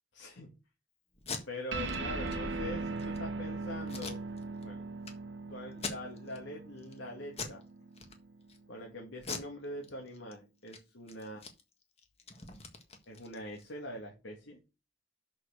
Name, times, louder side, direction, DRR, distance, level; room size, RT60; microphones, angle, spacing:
voice 1, 0.1-0.5 1.5-4.2 4.6-4.9 5.5-7.6 8.7-11.4 13.1-14.6, left 1 dB, 85° left, 0 dB, 2.2 m, -43 dB
Packing tape duct tape, 1.1-1.4 1.8-2.0 2.3-2.4 2.8-3.2 3.9-4.7 5.0-5.1 5.7-6.4 6.8-7.0 7.3-7.6 7.9-8.6 9.2-10.3 10.6-10.8 11.1-13.7, left 4 dB, 35° left, 1.6 m, -42 dB
sound 1, 1.7-8.5, right 3 dB, 80° right, 1.4 m, -39 dB
6.5 x 5.7 x 6.8 m, 0.29 s
head